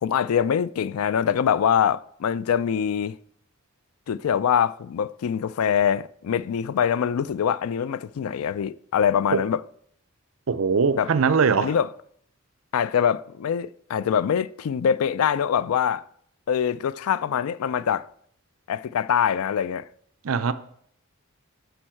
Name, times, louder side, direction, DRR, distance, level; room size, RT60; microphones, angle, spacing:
voice 1, 0.0-3.1 4.1-9.6 11.0-11.1 11.6-11.9 12.7-16.0 16.5-18.1 18.7-19.9, left 8 dB, 80° left, 0.3 m, -24 dB
voice 2, 10.5-11.8 20.2-20.5, right 5 dB, 70° right, 0.6 m, -21 dB
11.0 x 5.4 x 4.4 m
head